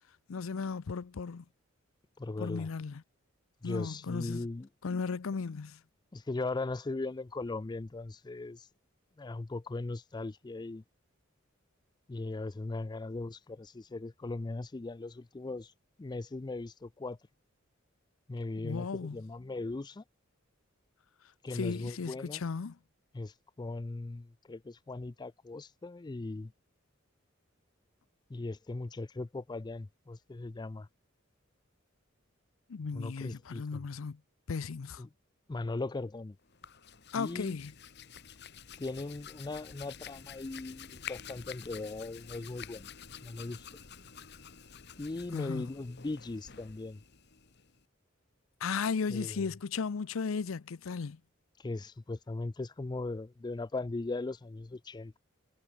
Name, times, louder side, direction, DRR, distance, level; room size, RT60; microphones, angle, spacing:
voice 1, 0.3-1.4 2.4-3.0 3.6-4.5 4.8-5.8 18.6-19.2 21.5-22.8 32.7-34.2 34.5-35.0 37.1-37.7 45.3-45.6 48.6-51.2, left 5 dB, 80° left, 0.6 m, -35 dB
voice 2, 2.2-2.7 3.6-4.7 6.1-8.7 9.2-10.8 12.1-15.7 16.0-17.2 18.3-20.0 21.4-22.4 23.1-26.5 28.3-30.9 32.9-33.8 35.0-35.1 35.5-36.4 37.1-37.6 38.8-42.9 43.2-43.7 45.0-47.0 49.1-49.5 51.6-55.2, left 2 dB, 20° left, 0.4 m, -38 dB
Hands, 36.4-47.8, left 8 dB, 55° left, 1.9 m, -49 dB
head